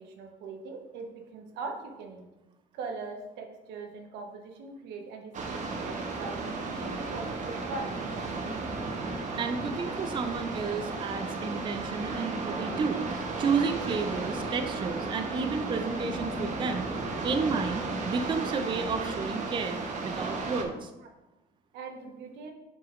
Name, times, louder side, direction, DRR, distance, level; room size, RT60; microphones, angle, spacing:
voice 1, 0.0-2.3 2.7-8.0 14.0-14.2 16.5-16.6 17.7-17.8 19.2-19.3 21.7-22.5, right 4 dB, 85° right, 3 dB, 1.0 m, -41 dB
sound 1, 5.3-20.6, right 3 dB, 45° right, 1.0 m, -34 dB
voice 2, 9.4-16.9 17.2-20.9, right 5 dB, 30° right, 7 dB, 0.4 m, -32 dB
7.5 x 5.4 x 2.5 m, 1.0 s
cardioid pair, 110°, 17 cm